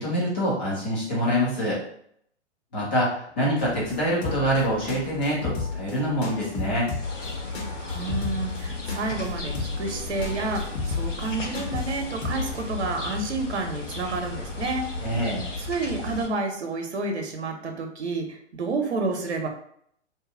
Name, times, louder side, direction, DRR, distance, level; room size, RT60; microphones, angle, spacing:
voice 1, 0.0-1.8 2.7-3.1 3.4-6.9 15.0-15.5, equal, 10° left, -7 dB, 0.3 m, -25 dB
sound 1, 3.6-12.6, left 3 dB, 60° left, 1.1 m, -34 dB
sound 2, 7.0-16.3, left 3 dB, 90° left, 0.9 m, -34 dB
voice 2, 7.9-15.2 15.6-19.5, right 3 dB, 65° right, 3 dB, 0.8 m, -30 dB
2.7 x 2.3 x 3.8 m, 0.67 s
figure-of-eight pair, 120°, 35 cm